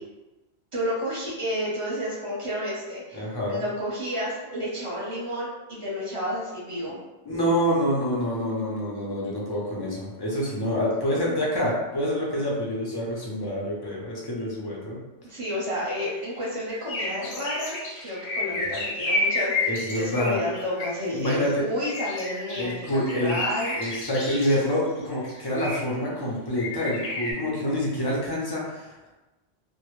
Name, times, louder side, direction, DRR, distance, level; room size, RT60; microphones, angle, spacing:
voice 1, 0.7-3.2 3.5-7.0 14.3-14.5 15.2-24.0, equal, 35° right, -6 dB, 0.7 m, -31 dB
voice 2, 3.1-3.6 6.8-6.9 7.3-15.0 18.5-18.6 19.6-20.4 21.1-21.6 22.6-23.4 23.8-29.1, equal, 35° left, -4 dB, 0.4 m, -27 dB
sound 1, 15.9-16.4 16.7-21.5 21.8-24.7 25.3-26.0 26.5-27.3, left 2 dB, 75° left, 0.8 m, -31 dB
2.1 x 2.1 x 3.0 m, 1.1 s
omnidirectional pair, 1.1 m